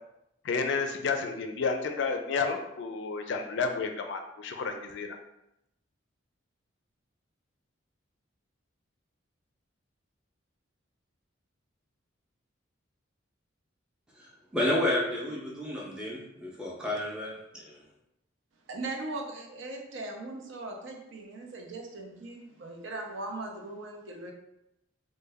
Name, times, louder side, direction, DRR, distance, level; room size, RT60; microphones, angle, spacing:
voice 1, 0.4-5.2, left 4 dB, 60° left, 5 dB, 0.4 m, -31 dB
voice 2, 14.2-17.8, left 1 dB, 5° right, -4 dB, 0.6 m, -31 dB
voice 3, 18.7-24.3, right 2 dB, 65° right, 1 dB, 0.6 m, -39 dB
3.2 x 2.2 x 3.4 m, 0.84 s
head